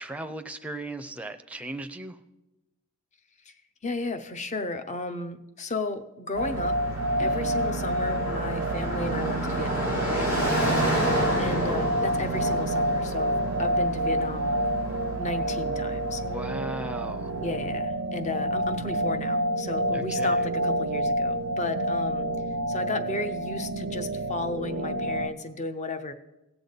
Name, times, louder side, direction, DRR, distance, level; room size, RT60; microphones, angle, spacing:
voice 1, 0.0-2.2 7.2-7.5 10.3-11.0 16.2-17.3 19.9-20.5, right 1 dB, 5° right, 8 dB, 0.5 m, -38 dB
voice 2, 3.8-6.7 7.2-10.3 11.4-14.6 15.2-16.2 17.4-22.3 22.7-26.1, left 2 dB, 35° left, 9 dB, 0.7 m, -34 dB
Car passing by, 6.4-17.5, right 1 dB, 85° left, 4.0 m, -31 dB
sound 1, 6.4-25.3, right 1 dB, 70° right, 0.5 m, -28 dB
17.0 x 7.0 x 4.0 m, 0.98 s
head